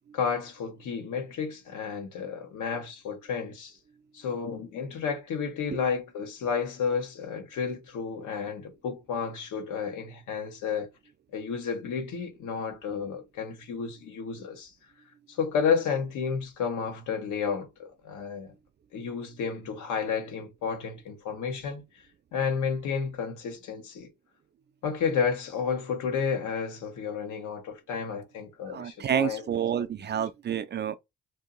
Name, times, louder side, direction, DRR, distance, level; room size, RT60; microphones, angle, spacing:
voice 1, 0.1-3.8 4.1-10.9 11.3-14.7 15.3-18.5 18.9-21.8 22.3-24.1 24.8-29.4, left 6 dB, 80° left, 1.1 m, -31 dB
voice 2, 28.7-31.0, right 9 dB, 35° right, 0.4 m, -29 dB
2.8 x 2.7 x 3.7 m
cardioid pair, 90°, 30 cm